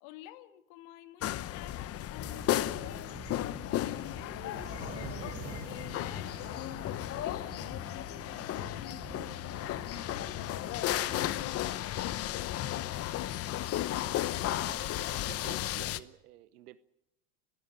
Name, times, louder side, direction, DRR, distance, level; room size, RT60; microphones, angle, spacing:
voice 1, 0.0-10.7 11.1-12.3, left 15 dB, 65° left, 11 dB, 1.9 m, -49 dB
sound 1, 1.2-16.0, left 13 dB, 30° left, 0.8 m, -34 dB
sound 2, 2.2-11.3, right 3 dB, 20° right, 5.4 m, -47 dB
voice 2, 14.4-16.8, right 14 dB, 80° right, 15 dB, 1.0 m, -52 dB
29.0 x 12.5 x 9.0 m, 0.85 s
supercardioid pair, 115°, 45 cm